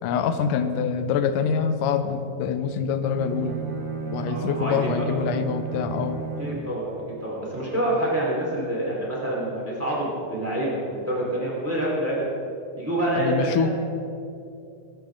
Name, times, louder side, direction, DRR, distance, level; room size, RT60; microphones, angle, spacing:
voice 1, 0.0-3.6 4.1-6.2 13.2-13.7, left 6 dB, 75° left, 9 dB, 2.2 m, -25 dB
Bowed string instrument, 2.9-6.8, right 5 dB, 45° right, 2.2 m, -33 dB
voice 2, 4.3-5.0 6.4-12.3 12.8-13.7, right 1 dB, 5° right, -5 dB, 4.0 m, -27 dB
24.0 x 12.0 x 3.9 m, 2.6 s
omnidirectional pair, 4.3 m